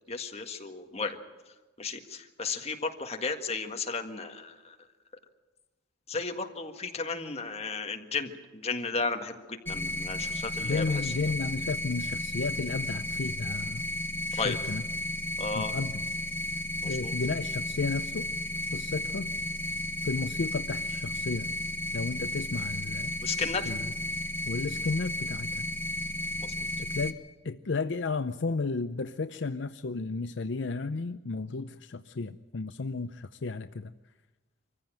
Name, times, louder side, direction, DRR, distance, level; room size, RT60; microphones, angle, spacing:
voice 1, 0.1-1.2 1.8-4.7 6.1-11.1 14.4-14.6 15.4-15.7 16.8-17.1 23.2-23.7 26.4-26.5, left 4 dB, 35° left, 5 dB, 1.7 m, -34 dB
sound 1, 9.7-27.1, left 1 dB, 10° left, 1.5 m, -34 dB
voice 2, 10.6-13.9 14.3-14.8 15.5-16.0 16.8-18.3 18.7-19.3 20.0-21.5 21.9-23.1 23.7-23.9 24.4-25.7 26.8-27.2 27.4-33.9, left 3 dB, 70° left, 10 dB, 0.6 m, -33 dB
25.0 x 15.0 x 9.0 m, 1.2 s
head